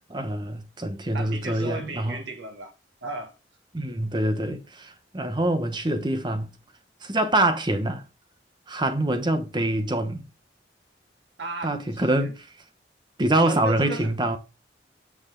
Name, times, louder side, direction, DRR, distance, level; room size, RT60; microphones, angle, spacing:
voice 1, 0.1-2.2 3.7-6.5 7.0-8.0 8.7-10.2 11.6-12.5 13.2-14.4, right 1 dB, 25° right, 1.0 m, -25 dB
voice 2, 1.1-2.7 3.0-3.3 11.4-12.3 13.4-14.1, right 2 dB, 85° right, 1.5 m, -35 dB
8.7 x 4.8 x 3.8 m
head